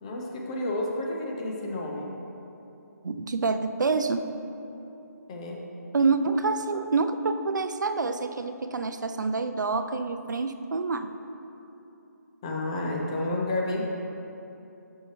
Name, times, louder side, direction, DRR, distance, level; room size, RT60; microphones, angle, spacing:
voice 1, 0.0-2.1 5.3-5.6 12.4-13.9, left 2 dB, 20° left, -1 dB, 0.5 m, -30 dB
voice 2, 3.0-4.2 5.9-11.1, right 4 dB, 90° right, 8 dB, 0.4 m, -27 dB
6.7 x 6.2 x 3.1 m, 2.9 s
hypercardioid pair, 165°, 10 cm